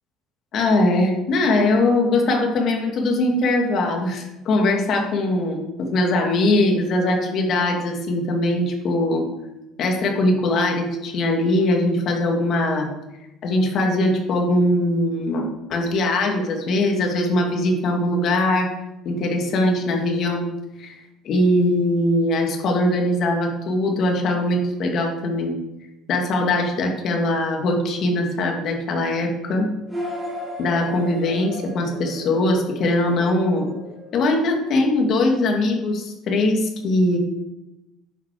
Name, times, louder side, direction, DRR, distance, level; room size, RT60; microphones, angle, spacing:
voice 1, 0.5-9.3 9.8-12.9 13.4-18.7 19.0-20.5 20.8-20.9 21.2-25.5 26.1-29.7 30.6-33.7 34.1-37.2, left 1 dB, 45° left, 2 dB, 2.4 m, -21 dB
sound 1, 29.9-34.7, equal, 10° right, 4.5 m, -35 dB
11.0 x 7.5 x 5.1 m, 0.95 s
cardioid pair, 145°, 0 cm